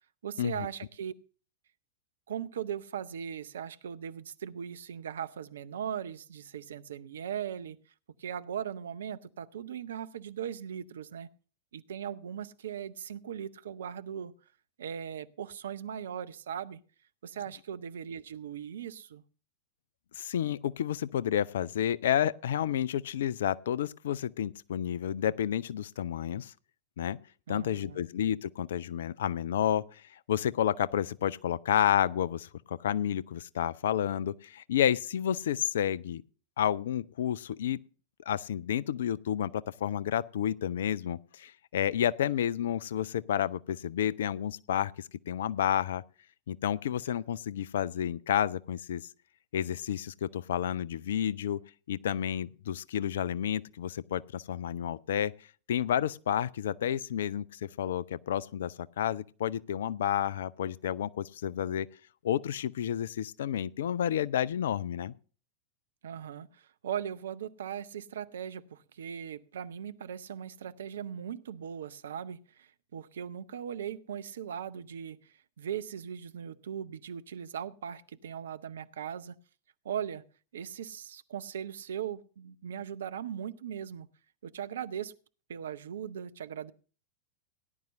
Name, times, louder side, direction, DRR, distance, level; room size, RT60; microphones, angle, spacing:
voice 1, 0.2-1.1 2.3-7.8 8.2-11.3 11.7-14.3 14.8-16.8 17.2-19.2 27.5-28.1 66.0-79.3 79.8-80.2 80.5-84.1 84.4-85.1 85.5-86.7, right 9 dB, 65° right, 0.6 m, -39 dB
voice 2, 20.1-26.5 27.0-27.2 27.5-30.0 30.3-36.2 36.6-37.8 38.3-39.5 39.8-44.9 45.3-46.0 46.5-49.0 49.5-51.6 51.9-55.3 55.7-61.9 62.2-65.1, left 10 dB, 60° left, 0.4 m, -30 dB
18.0 x 10.5 x 2.5 m
figure-of-eight pair, 90°, 0 cm